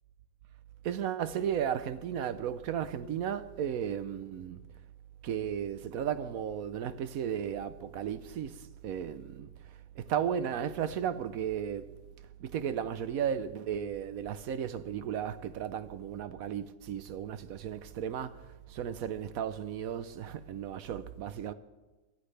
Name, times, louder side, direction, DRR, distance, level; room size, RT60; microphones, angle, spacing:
voice 1, 0.8-4.6 5.2-9.5 10.0-11.9 12.4-18.4 18.7-21.5, right 9 dB, 65° right, 1.0 m, -34 dB
24.0 x 14.5 x 3.3 m
omnidirectional pair, 1.9 m